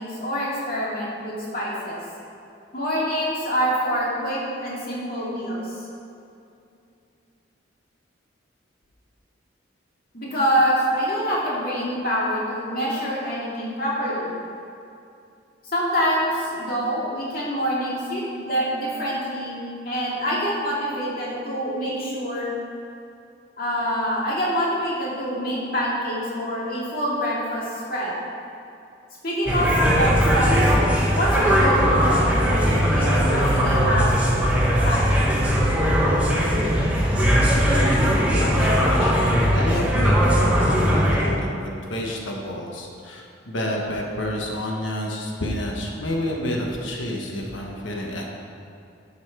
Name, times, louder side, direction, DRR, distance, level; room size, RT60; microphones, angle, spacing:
voice 1, 0.0-2.0 2.7-5.8 10.1-14.3 15.6-19.6 19.9-22.5 23.6-28.1 29.2-30.7 31.1-34.1 34.8-35.2, equal, 50° left, -6 dB, 2.3 m, -25 dB
sound 1, 29.5-41.3, equal, 5° right, 1.3 m, -19 dB
voice 2, 37.7-48.3, left 1 dB, 80° left, -1 dB, 1.2 m, -29 dB
11.0 x 5.5 x 4.7 m, 2.6 s
head